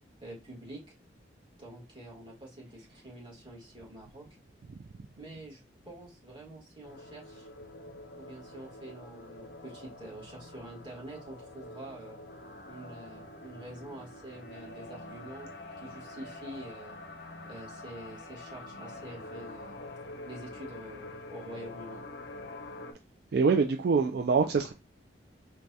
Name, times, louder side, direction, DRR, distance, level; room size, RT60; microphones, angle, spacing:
voice 1, 0.2-0.8 1.6-4.3 5.2-7.5 8.2-12.2 12.7-15.5 15.8-17.0 17.4-19.8 20.2-22.0, right 1 dB, 25° right, 1.5 m, -46 dB
sound 1, 6.8-22.9, left 2 dB, 60° left, 0.5 m, -46 dB
voice 2, 23.3-24.7, right 5 dB, 55° right, 0.3 m, -25 dB
4.6 x 2.2 x 2.7 m
head